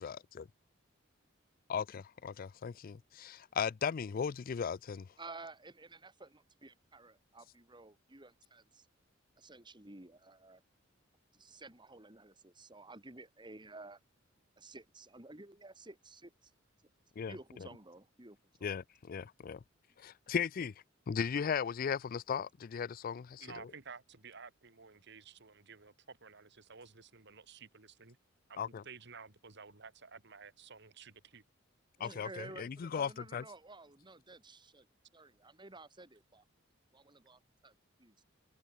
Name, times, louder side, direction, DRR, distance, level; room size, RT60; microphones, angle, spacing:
voice 1, 1.7-5.1 17.2-17.3 18.6-19.6 20.0-20.7 21.1-23.5 28.6-28.8 32.0-33.4, left 7 dB, 45° left, 0.4 m, -37 dB
voice 2, 5.2-8.9 9.4-10.6 11.3-14.0 14.6-16.5 17.3-18.7 32.0-34.9 35.1-36.4 36.9-38.2, right 2 dB, 25° right, 2.8 m, -53 dB
voice 3, 23.4-28.2 28.5-31.4, right 5 dB, 60° right, 2.4 m, -53 dB
head